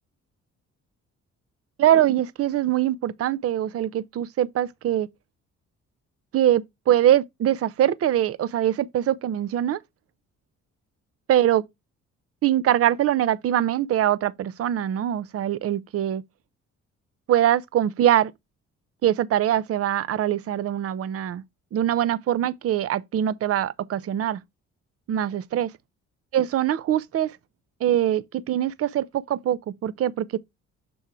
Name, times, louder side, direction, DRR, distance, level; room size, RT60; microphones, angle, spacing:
voice 1, 1.8-5.1 6.3-9.8 11.3-11.6 12.4-16.2 17.3-18.3 19.0-21.4 21.7-24.4 25.1-25.7 26.3-27.3 27.8-30.4, right 11 dB, 50° right, 0.6 m, -23 dB
6.9 x 3.5 x 4.4 m
cardioid pair, 90°, 30 cm